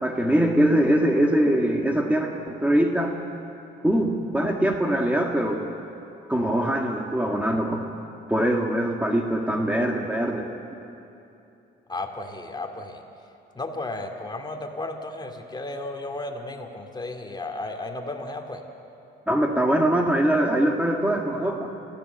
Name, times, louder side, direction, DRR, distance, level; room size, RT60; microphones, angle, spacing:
voice 1, 0.0-3.1 3.8-5.7 6.3-7.8 8.3-10.5 19.3-21.7, right 1 dB, 5° right, 1 dB, 1.7 m, -22 dB
voice 2, 11.9-13.0 13.5-18.6, left 2 dB, 20° left, 3 dB, 2.4 m, -34 dB
26.5 x 16.0 x 7.9 m, 2.8 s
cardioid pair, 90°, 20 cm